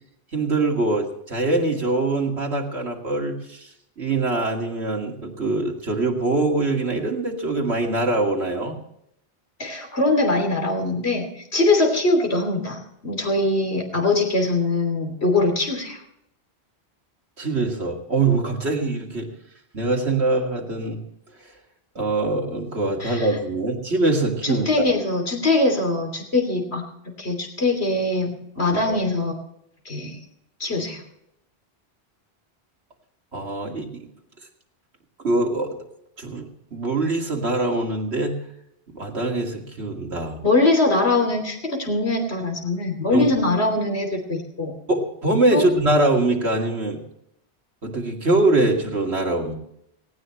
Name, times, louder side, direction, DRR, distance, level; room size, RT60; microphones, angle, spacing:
voice 1, 0.3-3.7 4.0-8.8 17.4-19.3 19.7-21.0 22.0-24.8 28.9-29.0 33.3-34.0 35.2-35.8 36.2-38.4 38.9-40.4 43.1-43.3 44.9-47.0 47.8-49.6, right 2 dB, 80° right, 1 dB, 2.7 m, -23 dB
voice 2, 9.6-16.0 23.0-23.3 24.4-29.3 29.8-30.2 30.6-31.0 40.4-44.7 45.5-45.7, left 2 dB, 75° left, 2 dB, 3.4 m, -22 dB
18.5 x 17.5 x 3.3 m, 0.76 s
omnidirectional pair, 1.1 m